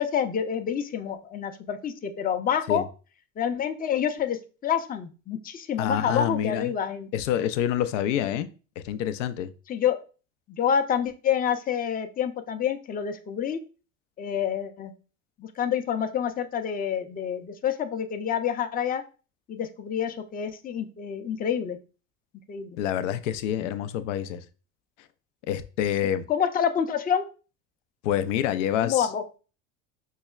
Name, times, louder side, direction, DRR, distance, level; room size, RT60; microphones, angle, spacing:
voice 1, 0.0-2.8 3.4-4.4 4.6-7.1 9.7-10.0 10.5-13.6 14.2-14.9 15.4-19.0 19.5-21.8 22.5-22.8 26.3-27.3 28.8-29.2, left 8 dB, 25° left, 7 dB, 0.5 m, -27 dB
voice 2, 5.8-6.7 7.1-8.5 8.8-9.5 22.8-24.4 25.5-26.2 28.0-29.1, left 10 dB, 80° left, 12 dB, 0.5 m, -27 dB
5.3 x 2.1 x 2.3 m, 0.35 s
hypercardioid pair, 85°, 37 cm